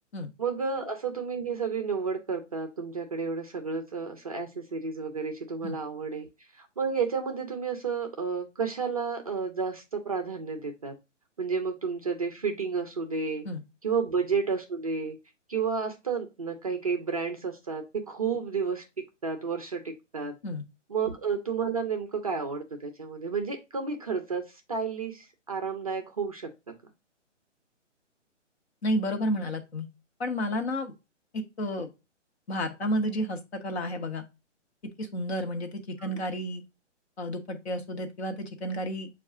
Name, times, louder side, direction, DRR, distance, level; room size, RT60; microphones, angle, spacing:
voice 1, 0.4-6.3 6.5-11.0 11.4-13.4 13.8-15.2 15.5-20.3 20.9-26.5 36.0-36.2, right 5 dB, 30° right, 5 dB, 0.4 m, -31 dB
voice 2, 28.8-29.9 30.2-30.9 31.3-31.9 32.5-34.2 35.0-36.6 37.2-39.1, equal, 55° left, 5 dB, 1.0 m, -31 dB
6.2 x 2.4 x 3.5 m, 0.26 s
hypercardioid pair, 145°, 37 cm